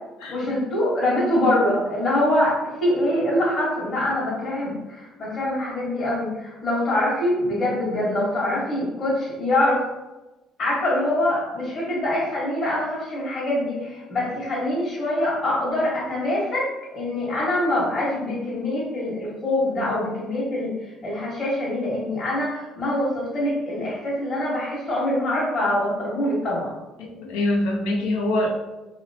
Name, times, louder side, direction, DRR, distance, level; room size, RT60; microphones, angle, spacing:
voice 1, 0.3-2.5 2.8-9.8 10.6-16.7 16.9-20.7 21.0-26.7, left 1 dB, 50° left, -7 dB, 1.3 m, -24 dB
voice 2, 27.0-28.6, left 1 dB, 85° left, 1 dB, 0.6 m, -24 dB
3.0 x 2.8 x 2.7 m, 1.1 s
supercardioid pair, 70°, 0 cm